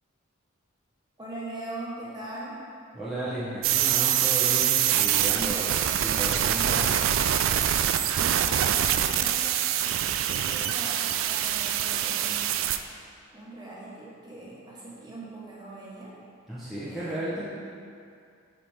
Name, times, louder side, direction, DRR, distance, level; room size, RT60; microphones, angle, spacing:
voice 1, 1.2-2.6 8.2-9.6 10.3-12.6 13.3-16.1 16.8-17.4, right 1 dB, 20° right, -6 dB, 1.3 m, -41 dB
voice 2, 2.9-6.9 16.5-17.5, right 1 dB, ahead, -12 dB, 1.0 m, -34 dB
sound 1, 3.6-12.8, right 10 dB, 65° right, 0.3 m, -25 dB
7.4 x 6.0 x 3.5 m, 2.3 s
head